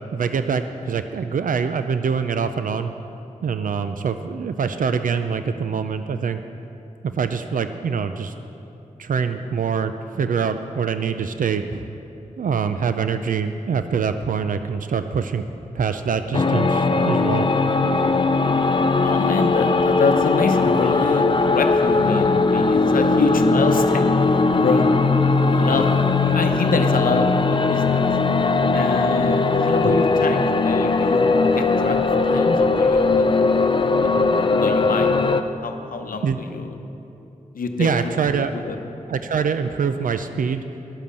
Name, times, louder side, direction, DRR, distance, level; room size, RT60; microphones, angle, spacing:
voice 1, 0.1-2.9 3.4-6.4 7.0-8.3 9.0-11.9 12.4-15.5 15.8-17.5 29.8-30.0 36.2-36.4 37.8-38.7 39.1-40.6, right 6 dB, 75° right, 9 dB, 0.4 m, -24 dB
sound 1, 16.3-35.4, left 3 dB, 35° left, 0.5 m, -19 dB
voice 2, 19.0-24.2 24.5-25.9 26.2-28.1 28.7-32.0 32.3-33.7 34.0-35.2 35.6-36.7 37.5-38.8, left 4 dB, 85° left, 6 dB, 0.8 m, -26 dB
10.5 x 7.4 x 6.8 m, 2.8 s
wide cardioid pair, 80°, 14 cm